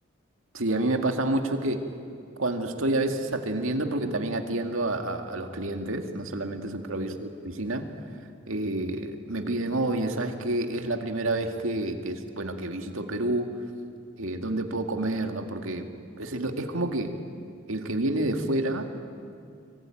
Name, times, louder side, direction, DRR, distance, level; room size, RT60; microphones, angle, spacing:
voice 1, 0.5-1.8 2.4-7.9 8.5-13.5 14.2-15.9 16.2-17.2 17.7-18.9, right 2 dB, 85° right, 5 dB, 2.1 m, -29 dB
25.0 x 24.5 x 9.1 m, 2.4 s
head